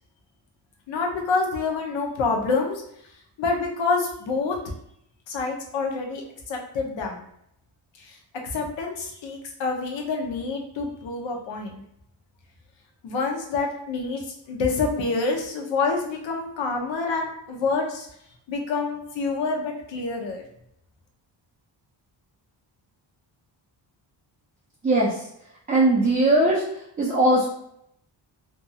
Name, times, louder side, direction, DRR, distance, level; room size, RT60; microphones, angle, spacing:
voice 1, 0.9-2.8 3.4-4.6 5.3-7.2 8.0-8.2 8.5-11.8 13.0-14.2 14.5-18.1 18.5-20.4, left 4 dB, 75° left, 2 dB, 0.7 m, -27 dB
voice 2, 25.7-26.6 27.0-27.4, right 1 dB, 20° right, -6 dB, 0.4 m, -19 dB
2.6 x 2.3 x 2.7 m, 0.73 s
wide cardioid pair, 175°, 46 cm